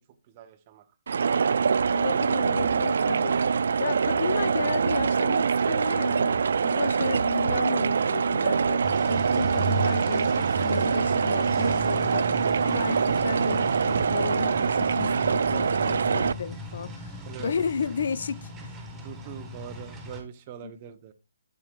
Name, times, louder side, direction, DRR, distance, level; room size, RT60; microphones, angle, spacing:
voice 1, 0.3-0.8 17.3-17.5 19.0-21.1, right 9 dB, 30° right, 0.9 m, -43 dB
sound 1, 1.1-16.3, right 6 dB, 60° right, 0.4 m, -24 dB
voice 2, 1.9-3.4 3.8-18.8 20.6-20.7, left 6 dB, 55° left, 0.5 m, -33 dB
sound 2, 8.8-20.2, right 1 dB, 10° right, 2.1 m, -36 dB
8.7 x 8.4 x 2.5 m
figure-of-eight pair, 140°, 0 cm